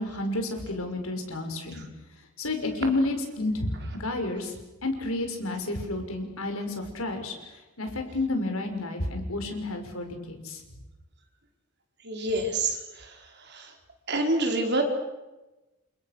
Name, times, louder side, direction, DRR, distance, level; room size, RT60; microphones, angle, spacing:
voice 1, 0.0-1.8 2.4-3.7 4.0-10.6, left 2 dB, 80° left, 5 dB, 5.8 m, -31 dB
voice 2, 12.0-13.7 14.1-14.8, right 2 dB, 50° right, 3 dB, 4.8 m, -28 dB
29.5 x 27.5 x 6.7 m, 1.0 s
head